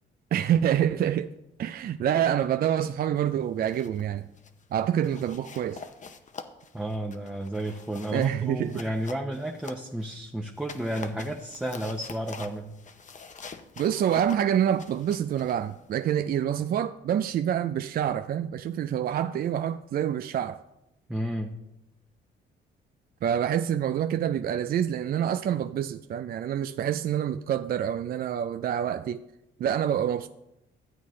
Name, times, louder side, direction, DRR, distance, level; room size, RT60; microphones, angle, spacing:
voice 1, 0.3-1.3 1.6-4.3 4.7-5.8 8.1-8.8 13.8-20.6 23.2-29.2 29.6-30.3, right 10 dB, 50° right, 0.4 m, -27 dB
sound 1, 3.4-4.1 4.4-4.6 5.0-10.1 10.5-16.4, left 5 dB, 40° left, 0.8 m, -46 dB
voice 2, 6.7-12.7 21.1-21.5, right 1 dB, 5° right, 0.8 m, -32 dB
13.0 x 8.3 x 3.2 m
cardioid pair, 90°, 20 cm